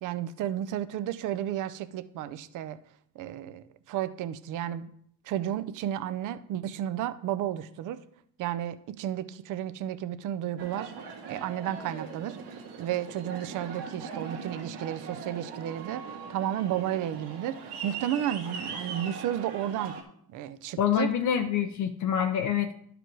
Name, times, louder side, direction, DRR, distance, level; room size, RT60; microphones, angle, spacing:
voice 1, 0.0-2.8 3.2-4.9 5.2-8.0 8.4-10.9 11.3-20.0 20.3-21.1, right 11 dB, 45° right, 12 dB, 0.5 m, -33 dB
Aircraft, 10.6-20.0, right 5 dB, 65° right, 1.8 m, -40 dB
voice 2, 20.8-22.7, left 9 dB, 45° left, 7 dB, 0.6 m, -26 dB
11.5 x 5.0 x 4.6 m, 0.65 s
cardioid pair, 155°, 43 cm